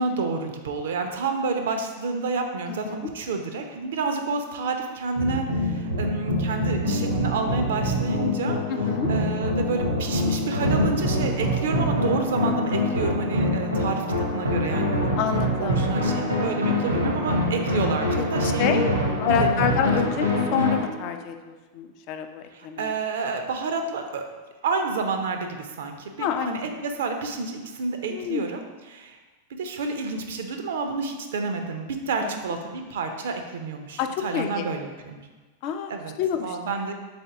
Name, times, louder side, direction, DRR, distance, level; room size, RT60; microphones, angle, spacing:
voice 1, 0.0-15.1 15.6-19.7 22.5-24.3 24.6-28.6 28.9-29.2 29.5-35.2 35.9-36.1 36.4-36.9, right 4 dB, 60° right, 5 dB, 0.4 m, -29 dB
voice 2, 2.7-3.1 8.7-9.1 15.2-15.8 18.6-18.9 19.2-22.9 26.2-26.7 28.1-28.5 32.2-32.3 34.0-34.6 35.6-35.9 36.2-36.6, left 8 dB, 45° left, 7 dB, 0.3 m, -27 dB
sound 1, 5.2-20.8, left 1 dB, 80° right, 0.8 m, -25 dB
3.9 x 3.4 x 3.8 m, 1.3 s
figure-of-eight pair, 90°, 0 cm